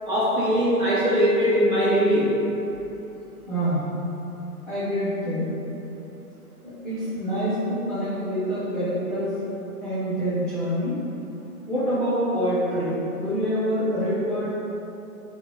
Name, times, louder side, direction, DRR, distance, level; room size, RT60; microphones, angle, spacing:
voice 1, 0.1-2.4, equal, 35° right, -8 dB, 0.7 m, -21 dB
voice 2, 3.5-3.8 4.7-5.6 6.6-9.5 9.8-11.1 11.7-14.6, equal, ahead, -14 dB, 0.9 m, -26 dB
5.9 x 2.1 x 3.5 m, 3.0 s
figure-of-eight pair, 130°, 45 cm